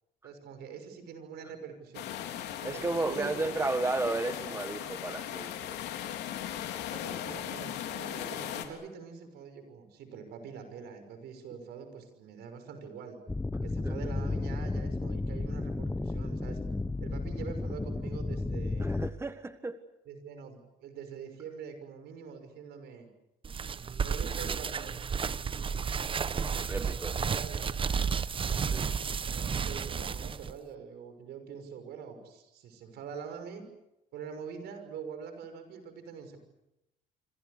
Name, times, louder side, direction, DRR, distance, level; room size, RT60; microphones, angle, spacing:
voice 1, 0.2-2.1 2.6-3.8 6.9-13.2 13.6-16.6 17.0-18.9 20.1-23.1 24.0-25.0 27.3-27.7 29.2-33.6 34.1-36.4, right 6 dB, 75° right, 8 dB, 6.1 m, -44 dB
sound 1, 1.9-8.7, left 11 dB, 80° left, 3.3 m, -38 dB
voice 2, 2.6-5.8 13.8-13.9 18.8-19.8 26.7-27.2 28.7-28.9, right 2 dB, 15° right, 10 dB, 1.5 m, -33 dB
sound 2, 13.3-19.1, left 2 dB, 10° left, 1.0 m, -33 dB
sound 3, 23.4-30.5, right 6 dB, 30° right, 1.0 m, -32 dB
26.5 x 26.0 x 6.7 m, 0.88 s
cardioid pair, 110°, 17 cm